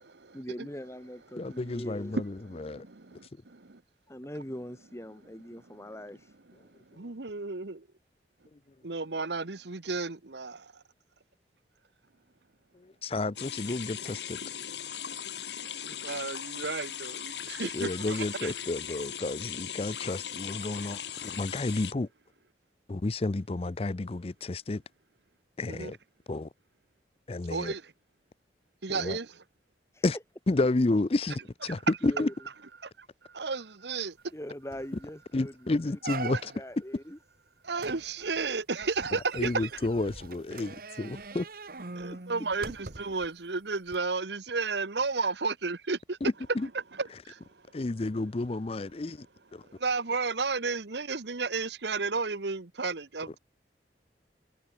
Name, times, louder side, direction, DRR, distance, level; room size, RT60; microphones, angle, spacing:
voice 1, 0.3-2.2 4.1-6.4 29.9-30.0 32.0-32.3 34.3-36.0 36.5-37.2 42.1-42.3 42.6-42.7, equal, 15° left, 2.5 m, -42 dB
voice 2, 1.4-2.9 7.0-7.1 8.5-8.6 12.7-14.4 17.7-22.1 22.9-24.8 25.6-26.0 26.3-26.5 27.3-27.7 28.9-29.2 30.0-30.2 30.5-32.3 35.3-36.5 39.3-41.5 46.2-46.7 47.7-49.3 49.5-49.7, left 2 dB, 35° left, 0.5 m, -31 dB
voice 3, 2.5-3.8 6.9-7.9 8.8-10.8 15.6-18.5 25.7-25.9 27.5-27.8 28.8-29.3 31.7-31.8 32.8-34.2 36.3-36.4 37.6-39.8 42.0-46.2 47.0-47.4 49.7-53.4, right 4 dB, 70° right, 1.2 m, -33 dB
Water running down the sink (medium), 13.4-21.9, left 9 dB, 75° left, 3.9 m, -39 dB
sound 1, 34.3-34.4 34.7-35.0 35.4-35.5 36.0-36.8 37.8-43.3 43.9-44.0, right 3 dB, 55° right, 1.5 m, -42 dB
head